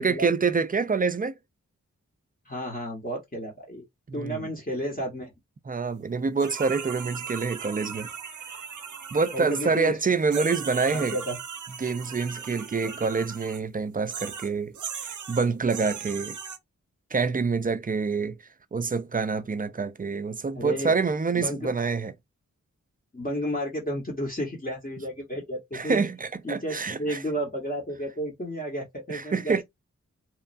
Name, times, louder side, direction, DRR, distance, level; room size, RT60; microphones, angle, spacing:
voice 1, 0.0-1.4 4.1-4.5 5.7-8.1 9.1-11.2 11.8-14.7 15.0-16.4 17.1-18.4 18.7-22.1 25.7-27.2 29.1-29.6, right 4 dB, 30° right, 0.4 m, -26 dB
voice 2, 2.5-3.8 4.1-5.3 9.3-10.0 10.4-10.5 10.9-11.4 20.6-20.9 21.4-21.7 23.1-26.0 26.4-29.6, equal, 30° left, 1.0 m, -32 dB
sound 1, 6.4-9.9 10.3-13.6 14.1-16.6, right 7 dB, 80° right, 0.6 m, -38 dB
3.0 x 2.3 x 2.4 m
wide cardioid pair, 95°, 30 cm